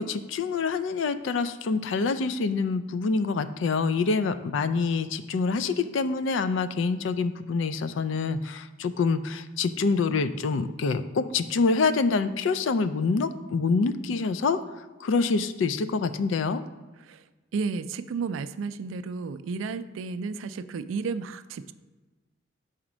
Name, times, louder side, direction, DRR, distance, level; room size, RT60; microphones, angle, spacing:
voice 1, 0.0-14.6 15.0-16.6, left 4 dB, 75° left, 11 dB, 0.4 m, -26 dB
voice 2, 17.5-21.7, right 4 dB, 85° right, 13 dB, 0.3 m, -32 dB
5.0 x 4.3 x 6.0 m, 1.2 s
head